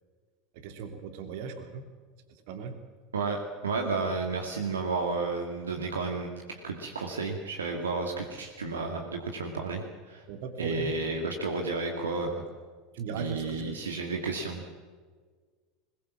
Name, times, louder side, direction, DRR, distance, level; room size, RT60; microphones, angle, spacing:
voice 1, 0.5-1.9 2.5-2.8 10.3-10.9 12.9-13.9, right 5 dB, 60° right, 7 dB, 2.8 m, -38 dB
voice 2, 3.1-10.2 10.6-12.4 13.1-14.6, right 3 dB, 80° right, 2 dB, 2.1 m, -32 dB
21.0 x 20.5 x 7.4 m, 1.5 s
figure-of-eight pair, 75°, 0 cm